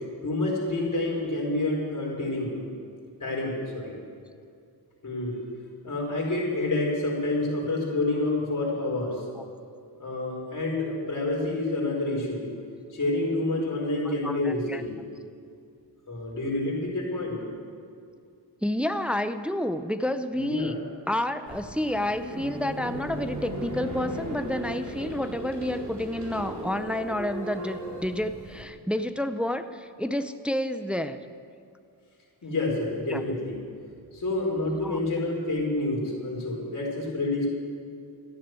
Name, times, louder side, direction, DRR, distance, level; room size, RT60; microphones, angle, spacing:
voice 1, 0.2-2.6 3.2-4.0 5.0-5.4 5.8-9.2 10.0-12.5 12.9-15.0 16.1-17.5 20.3-20.8 32.4-33.6 34.1-37.5, left 2 dB, 45° left, -2 dB, 4.9 m, -28 dB
voice 2, 14.0-14.8 18.6-20.7 21.1-31.2 33.1-33.2 34.8-35.0, left 1 dB, 5° right, 10 dB, 0.6 m, -29 dB
sound 1, 21.5-28.6, equal, 40° right, 4.3 m, -37 dB
14.0 x 10.5 x 8.1 m, 2.4 s
wide cardioid pair, 95°, 42 cm